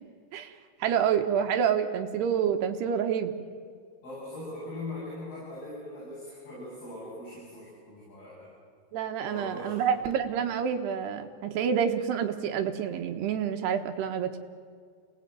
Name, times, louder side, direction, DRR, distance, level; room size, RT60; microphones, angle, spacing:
voice 1, 0.8-3.4 8.9-14.4, right 8 dB, 70° right, 6 dB, 3.0 m, -28 dB
voice 2, 4.0-8.5 9.2-10.0, left 1 dB, 50° left, -8 dB, 9.6 m, -41 dB
27.0 x 19.5 x 9.2 m, 2.1 s
omnidirectional pair, 5.5 m